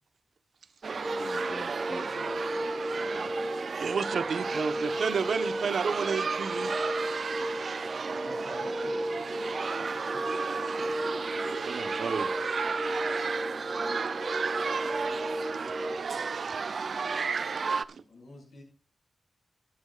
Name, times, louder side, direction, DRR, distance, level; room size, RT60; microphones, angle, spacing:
sound 1, 0.8-17.8, right 5 dB, 55° right, 0.6 m, -33 dB
voice 1, 0.9-2.7 3.0-3.3, left 2 dB, 65° left, 0 dB, 7.4 m, -44 dB
sound 2, 1.0-16.0, equal, 10° right, 1.2 m, -35 dB
voice 2, 3.7-6.7 11.4-12.3 17.9-18.0, right 5 dB, 80° right, 10 dB, 1.2 m, -31 dB
voice 3, 8.0-10.2 18.1-18.6, left 2 dB, 85° left, 2 dB, 7.3 m, -49 dB
18.5 x 10.5 x 2.5 m, 0.35 s
wide cardioid pair, 170°, 0 cm